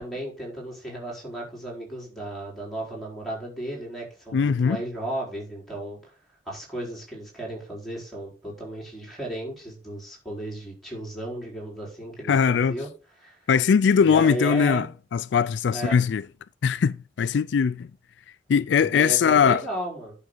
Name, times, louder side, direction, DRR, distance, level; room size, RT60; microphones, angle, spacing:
voice 1, 0.0-6.0 6.5-12.9 13.2-13.4 14.0-14.9 15.7-16.0 18.7-20.1, right 1 dB, ahead, 4.5 m, -34 dB
voice 2, 4.3-4.8 12.3-12.8 13.5-14.9 15.1-16.2 16.6-17.9 18.5-19.6, left 6 dB, 75° left, 0.3 m, -20 dB
10.5 x 5.9 x 3.9 m
head